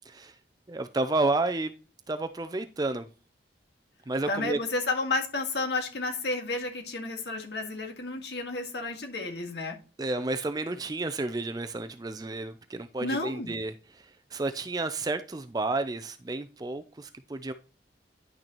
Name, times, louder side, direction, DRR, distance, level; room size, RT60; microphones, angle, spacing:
voice 1, 0.7-1.7 2.1-3.1 4.1-4.6 10.0-17.5, right 2 dB, 20° right, 0.4 m, -31 dB
voice 2, 4.3-9.8 13.0-13.5, left 2 dB, 70° left, 1.8 m, -31 dB
10.0 x 6.5 x 3.0 m
head